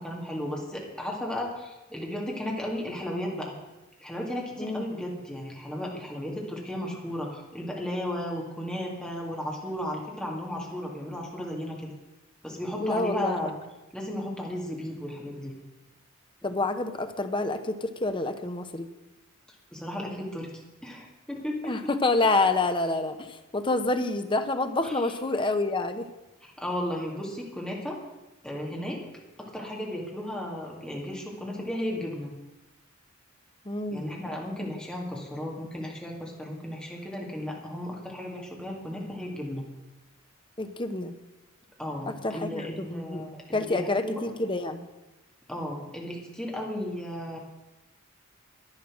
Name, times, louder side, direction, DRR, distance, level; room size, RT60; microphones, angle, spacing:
voice 1, 0.0-3.6 4.0-11.9 12.4-13.5 13.9-15.6 19.7-20.5 20.8-21.8 24.8-25.0 26.4-28.0 28.4-32.3 33.9-39.7 41.8-44.2 45.5-47.4, left 1 dB, 5° left, -2 dB, 2.3 m, -34 dB
voice 2, 12.8-13.4 16.4-18.9 21.6-26.1 33.6-34.0 40.6-41.1 42.1-43.2 43.5-44.9, left 2 dB, 25° left, 8 dB, 0.9 m, -28 dB
10.5 x 10.5 x 6.2 m, 1.0 s
head